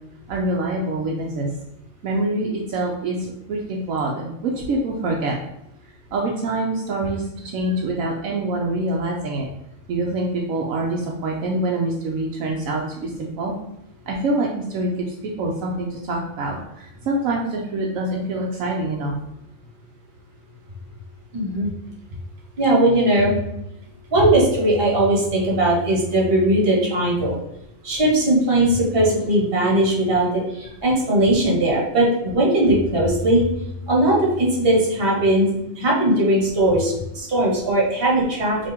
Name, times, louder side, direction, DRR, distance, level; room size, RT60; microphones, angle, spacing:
voice 1, 0.3-1.5 2.0-5.3 6.1-9.5 9.9-13.5 14.1-19.2, right 2 dB, 80° right, -1 dB, 1.0 m, -25 dB
voice 2, 21.3-21.7 22.6-23.4 24.1-27.3 27.8-33.5 33.9-35.5 35.8-38.6, right 1 dB, 45° right, -3 dB, 1.4 m, -19 dB
3.6 x 2.8 x 4.2 m, 0.84 s
omnidirectional pair, 1.4 m